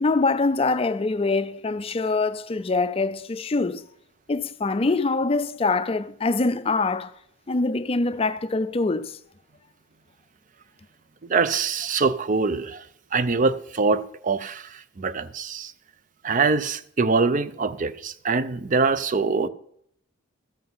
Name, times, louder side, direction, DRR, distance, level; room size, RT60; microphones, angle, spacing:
voice 1, 0.0-3.9 4.3-7.1 7.5-9.2, left 3 dB, 30° left, 0.4 m, -24 dB
voice 2, 11.3-12.8 13.1-15.7 16.2-19.5, right 4 dB, 40° right, 0.5 m, -24 dB
13.5 x 7.8 x 5.5 m
head